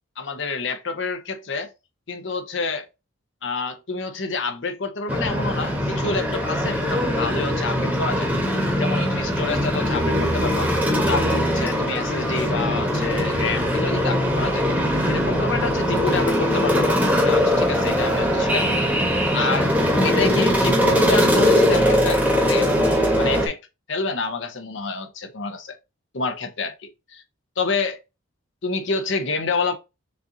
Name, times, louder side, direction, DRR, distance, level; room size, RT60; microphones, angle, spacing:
voice 1, 0.2-1.7 2.1-2.9 3.4-8.3 8.8-10.7 11.1-14.6 15.1-17.0 17.2-18.8 19.3-19.7 20.0-23.6 23.9-25.8 26.1-27.2 27.6-28.0 28.6-29.7, left 4 dB, 65° left, 0.8 m, -28 dB
sound 1, 5.1-23.5, equal, 5° right, 1.0 m, -21 dB
6.5 x 2.6 x 2.7 m
head